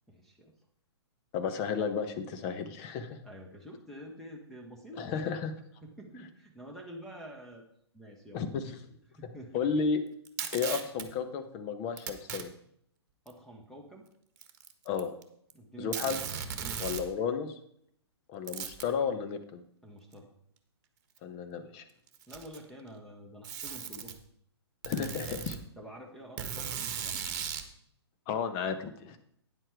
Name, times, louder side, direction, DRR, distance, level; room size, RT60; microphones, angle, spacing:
voice 1, 0.1-0.5 3.2-5.4 5.8-7.6 7.9-8.4 9.1-9.7 13.2-14.1 15.5-16.2 16.6-17.0 19.8-20.3 22.3-24.1 25.8-27.3, equal, 5° left, -1 dB, 1.4 m, -48 dB
voice 2, 1.3-3.2 5.0-5.5 8.3-8.8 9.5-10.0 10.5-12.5 14.8-15.1 15.8-16.2 16.8-17.6 18.3-19.6 21.2-21.8 24.9-25.6 28.3-29.2, left 6 dB, 30° left, 8 dB, 1.1 m, -33 dB
Packing tape duct tape, 10.2-11.1 12.0-12.4 13.3-13.4 14.4-15.2 15.5-15.6 15.9-17.1 18.5-18.9 20.1-20.2 21.2-21.3 22.1-22.7 23.4-24.2 24.8-25.6 26.4-27.7, right 7 dB, 45° right, 1.3 m, -37 dB
9.7 x 7.7 x 4.7 m, 0.70 s
figure-of-eight pair, 120°, 14 cm